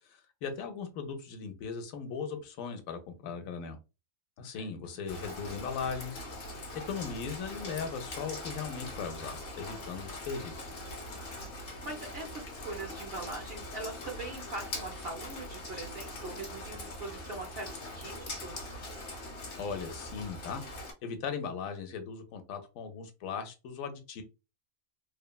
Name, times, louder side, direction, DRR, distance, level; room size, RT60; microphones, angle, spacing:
voice 1, 0.0-3.8 4.4-6.2 6.7-10.6 19.6-20.6 21.0-24.2, left 6 dB, 75° left, 1.0 m, -38 dB
Rain, 5.1-20.9, left 1 dB, 50° left, 0.8 m, -42 dB
voice 2, 11.1-18.7, right 2 dB, 60° right, 0.6 m, -42 dB
3.0 x 2.1 x 2.2 m
omnidirectional pair, 1.5 m